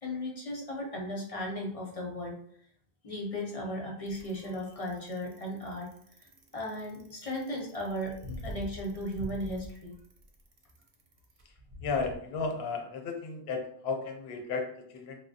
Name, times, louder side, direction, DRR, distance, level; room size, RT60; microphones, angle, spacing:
voice 1, 0.0-2.4 3.0-5.9 6.2-9.9, equal, 45° left, -1 dB, 0.5 m, -36 dB
Bicycle, 4.1-12.1, equal, 50° right, 0.4 m, -45 dB
voice 2, 11.8-15.2, left 4 dB, 80° left, 4 dB, 0.8 m, -34 dB
2.8 x 2.0 x 2.6 m, 0.65 s
omnidirectional pair, 1.0 m